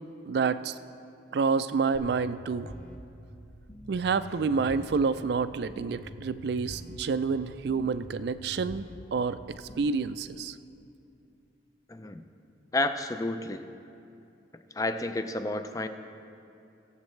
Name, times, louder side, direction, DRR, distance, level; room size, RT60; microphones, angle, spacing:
voice 1, 0.3-0.8 1.3-2.7 3.9-10.6, right 5 dB, 60° right, 13 dB, 0.3 m, -28 dB
sound 1, 1.9-10.0, left 1 dB, 45° left, 1.2 m, -46 dB
voice 2, 11.9-12.2 12.7-13.6 14.7-15.9, left 2 dB, 20° left, 8 dB, 0.4 m, -30 dB
20.5 x 7.4 x 3.2 m, 2.6 s
head